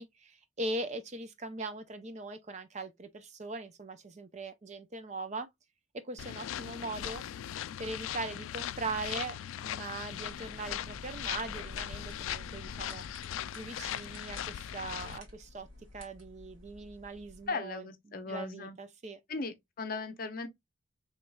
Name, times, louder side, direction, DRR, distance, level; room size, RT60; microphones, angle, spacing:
voice 1, 0.0-5.5 6.1-7.2 7.8-13.0 13.5-15.7 15.9-19.2, right 2 dB, 35° right, 0.5 m, -40 dB
sound 1, 6.2-15.2, left 11 dB, 75° left, 0.3 m, -39 dB
sound 2, 10.2-17.5, left 1 dB, 70° right, 1.6 m, -51 dB
voice 2, 17.5-18.8 19.3-20.5, left 3 dB, 45° left, 0.6 m, -37 dB
4.5 x 3.1 x 2.2 m
head